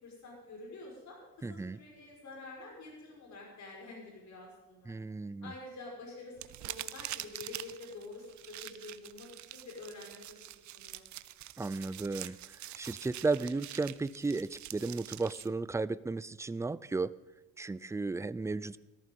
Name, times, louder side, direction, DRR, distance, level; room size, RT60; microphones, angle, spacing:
voice 1, 0.0-4.9 5.4-6.3 6.6-11.0, left 3 dB, 65° left, 0 dB, 5.6 m, -48 dB
voice 2, 1.4-1.8 4.9-5.5 11.6-17.1 17.6-18.8, right 3 dB, 10° right, 18 dB, 0.4 m, -34 dB
sound 1, 6.4-15.5, right 14 dB, 70° right, 0.7 m, -45 dB
14.0 x 14.0 x 5.4 m, 1.1 s
cardioid pair, 90°, 30 cm